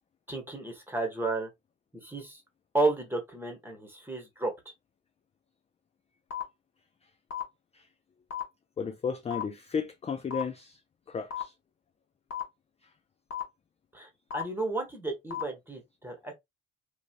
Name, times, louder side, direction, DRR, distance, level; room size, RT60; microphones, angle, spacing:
voice 1, 0.3-1.5 2.0-2.4 2.7-4.5 13.9-16.3, right 2 dB, 5° right, 1.3 m, -32 dB
sound 1, 6.3-6.4 7.3-7.4 8.3-8.4 9.3-9.4 10.3-10.4 11.3-11.4 12.3-12.4 13.3-13.4 14.3-14.4 15.3-15.4, left 9 dB, 50° left, 1.2 m, -34 dB
voice 2, 8.8-10.8 11.1-11.5, left 6 dB, 20° left, 0.3 m, -34 dB
3.1 x 2.5 x 2.5 m
cardioid pair, 90°, 31 cm